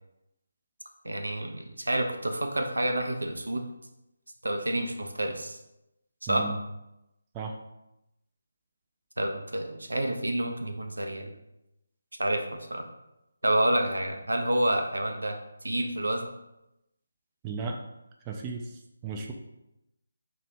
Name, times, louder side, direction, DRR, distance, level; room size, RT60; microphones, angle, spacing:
voice 1, 1.0-3.7 4.4-5.6 6.2-6.4 9.2-11.3 12.2-12.4 12.7-12.9 13.4-15.4 15.6-16.3, right 1 dB, 85° right, 4 dB, 0.6 m, -28 dB
voice 2, 6.3-6.6 7.3-7.6 17.4-17.8 18.3-19.3, right 4 dB, 20° right, 1 dB, 0.4 m, -35 dB
3.3 x 2.6 x 4.2 m, 0.89 s
figure-of-eight pair, 155°, 0 cm